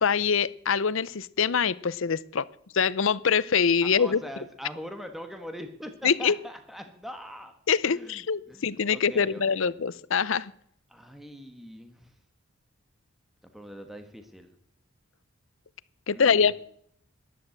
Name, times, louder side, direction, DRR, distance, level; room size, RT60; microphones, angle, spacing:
voice 1, 0.0-2.5 2.7-4.2 6.0-6.3 7.7-10.5 16.1-16.5, left 6 dB, 65° left, 19 dB, 0.6 m, -24 dB
voice 2, 3.8-7.5 7.8-8.6 8.9-9.7 10.9-12.2 13.4-14.5 16.1-16.5, equal, ahead, 6 dB, 1.4 m, -42 dB
13.5 x 11.5 x 7.8 m, 0.66 s
head